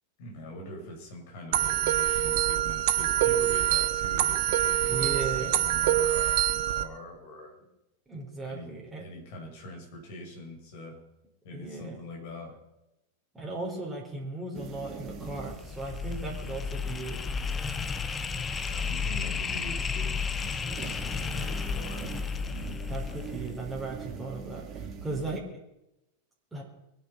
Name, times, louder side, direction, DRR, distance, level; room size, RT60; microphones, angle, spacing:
voice 1, 0.2-7.6 8.5-8.7 9.0-11.0 11.4-12.5 18.7-22.1, left 1 dB, 50° left, -1 dB, 6.4 m, -43 dB
sound 1, 1.5-6.8, right 12 dB, 50° right, 1.1 m, -25 dB
voice 2, 4.9-5.6 8.1-9.1 11.5-12.0 13.3-17.2 22.9-25.6 26.5-26.6, right 3 dB, 10° right, -3 dB, 4.4 m, -37 dB
sound 2, 14.5-20.2 20.7-25.4, right 6 dB, 35° right, 1.8 m, -44 dB
sound 3, 15.0-24.2, left 5 dB, 20° left, 1.0 m, -33 dB
23.5 x 10.0 x 5.9 m, 0.90 s
figure-of-eight pair, 90°, 0 cm